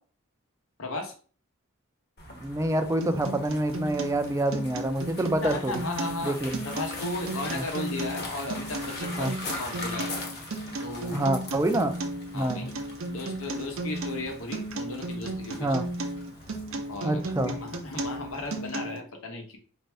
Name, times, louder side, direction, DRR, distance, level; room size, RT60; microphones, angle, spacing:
voice 1, 0.8-1.1 5.4-6.4 6.6-11.5 12.3-12.8 13.1-15.9 16.9-19.6, left 2 dB, 80° left, 4 dB, 0.9 m, -36 dB
sound 1, 2.2-18.7, left 2 dB, 50° left, 1.1 m, -42 dB
voice 2, 2.4-5.8 6.2-6.6 7.5-7.6 9.2-9.3 11.1-12.0 12.3-12.7 15.6-15.9 17.0-17.5, right 1 dB, 15° right, 7 dB, 0.4 m, -27 dB
Acoustic guitar, 3.0-19.0, right 2 dB, 75° right, 0.6 m, -35 dB
4.4 x 2.6 x 3.3 m, 0.41 s
head